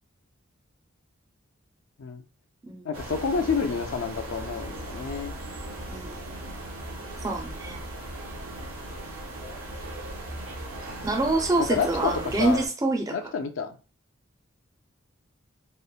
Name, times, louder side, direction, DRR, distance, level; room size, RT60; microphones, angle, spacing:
voice 1, 2.8-5.3 11.6-12.6 13.1-13.7, left 5 dB, 65° left, 6 dB, 0.4 m, -29 dB
sound 1, 2.9-12.7, right 1 dB, 90° right, 0.7 m, -38 dB
voice 2, 5.9-6.2 7.2-7.8 11.0-13.2, right 2 dB, 15° right, 3 dB, 0.3 m, -26 dB
2.9 x 2.0 x 2.3 m, 0.34 s
head